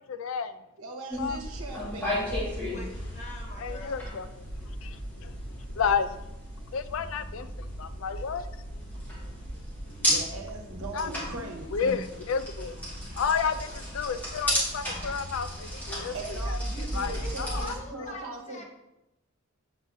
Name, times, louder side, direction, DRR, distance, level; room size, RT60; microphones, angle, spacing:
voice 1, 0.2-0.5 1.2-1.4 3.6-4.3 4.8-4.9 5.2-5.3 5.8-6.1 6.7-7.5 7.8-8.5 10.9-11.2 11.7-12.8 13.2-16.1 16.5-16.6 16.9-17.2 17.5-17.7, left 6 dB, 75° left, 11 dB, 0.4 m, -30 dB
voice 2, 0.8-2.6 9.9-11.7 16.0-18.6, right 2 dB, 90° right, 2 dB, 1.1 m, -40 dB
sound 1, 1.1-17.7, equal, 10° left, 2.3 m, -34 dB
voice 3, 2.6-4.0 4.6-4.7 17.1-18.6, left 1 dB, 35° left, -1 dB, 1.3 m, -43 dB
7.8 x 4.8 x 2.7 m, 0.90 s
head